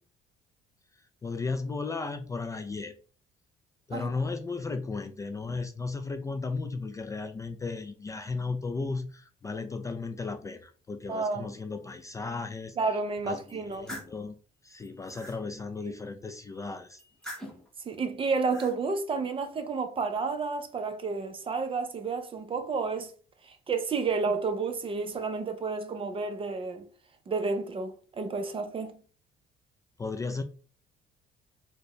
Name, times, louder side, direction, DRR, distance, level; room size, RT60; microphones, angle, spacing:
voice 1, 0.9-2.9 3.9-12.8 13.2-14.3 14.6-17.0 30.0-30.4, left 4 dB, 20° left, 0.3 m, -35 dB
voice 2, 11.1-11.5 12.8-13.9 15.8-15.9 17.9-23.1 23.5-26.9 27.3-29.0, right 4 dB, 30° right, 0.6 m, -31 dB
sound 1, 13.5-14.2 14.7-15.4 17.0-17.7 18.3-18.8, equal, 5° left, 1.1 m, -43 dB
4.2 x 2.2 x 3.0 m
cardioid pair, 110°, 17 cm